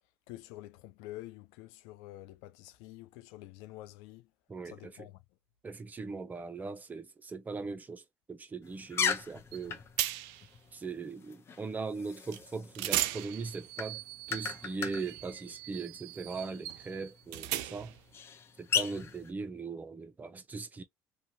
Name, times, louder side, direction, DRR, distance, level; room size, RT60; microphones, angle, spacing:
voice 1, 0.3-4.3 4.6-5.2, left 16 dB, 85° left, 0.4 m, -48 dB
voice 2, 4.5-5.1 5.6-9.8 10.7-14.0 14.3-17.9 18.6-20.8, right 4 dB, 25° right, 0.6 m, -40 dB
sound 1, 8.6-19.3, left 7 dB, 40° left, 0.7 m, -39 dB
sound 2, 9.5-9.6 10.0-10.5 12.3-12.4 12.8-18.0, right 15 dB, 85° right, 0.3 m, -37 dB
2.8 x 2.3 x 2.7 m
supercardioid pair, 90°, 7 cm